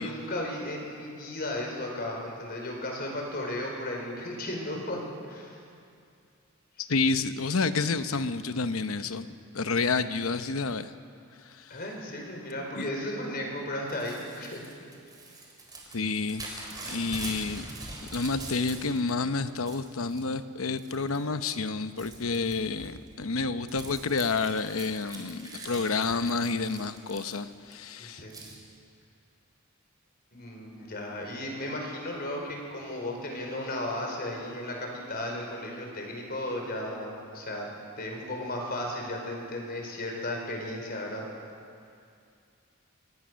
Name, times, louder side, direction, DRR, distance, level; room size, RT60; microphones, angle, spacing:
voice 1, 0.0-5.6 11.7-14.7 28.0-28.4 30.3-37.7 38.0-41.2, left 1 dB, 45° left, 1 dB, 4.5 m, -35 dB
voice 2, 6.8-9.3 9.5-10.9 11.4-11.8 12.7-12.9 15.9-17.7 18.1-28.2, left 4 dB, 75° left, 11 dB, 0.9 m, -29 dB
Crumpling crinkling / Tearing, 13.9-19.1 19.5-20.2 20.8-21.2 21.5-27.7 28.3-28.6, right 2 dB, 20° right, 4.1 m, -43 dB
26.0 x 19.5 x 6.4 m, 2.4 s
head